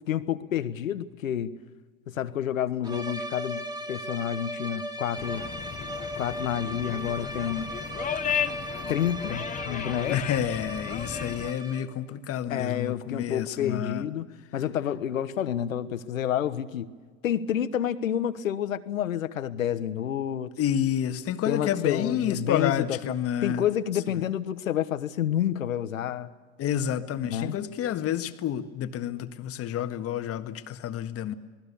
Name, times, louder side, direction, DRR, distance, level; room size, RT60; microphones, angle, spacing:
voice 1, 0.0-1.5 2.1-5.5 6.2-7.7 8.9-10.2 12.5-14.3 14.5-16.9 17.2-20.5 21.5-23.1 23.4-26.3 27.2-27.6, left 10 dB, 90° left, 12 dB, 1.3 m, -29 dB
sound 1, 2.8-12.0, equal, 10° right, 1.7 m, -37 dB
sound 2, 5.2-11.5, left 9 dB, 20° left, 0.6 m, -35 dB
voice 2, 10.1-14.1 20.6-23.6 26.6-31.3, left 10 dB, 35° left, 8 dB, 1.6 m, -29 dB
28.5 x 19.5 x 7.1 m, 1.4 s
hypercardioid pair, 105°, 39 cm